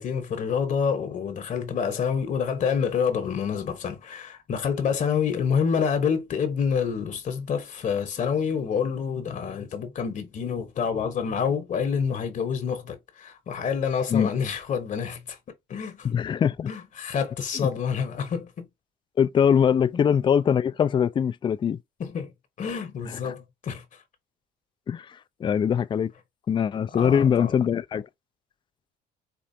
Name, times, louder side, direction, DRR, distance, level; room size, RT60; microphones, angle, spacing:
voice 1, 0.0-15.4 15.7-16.1 16.7-18.7 19.9-20.0 22.0-22.3 22.6-23.8 26.9-27.6, left 6 dB, 50° left, 1.0 m, -27 dB
voice 2, 16.0-16.7 19.2-21.8 23.1-23.2 24.9-26.1 26.5-28.0, left 8 dB, 30° left, 0.4 m, -22 dB
4.5 x 2.5 x 2.6 m
cardioid pair, 110°, 17 cm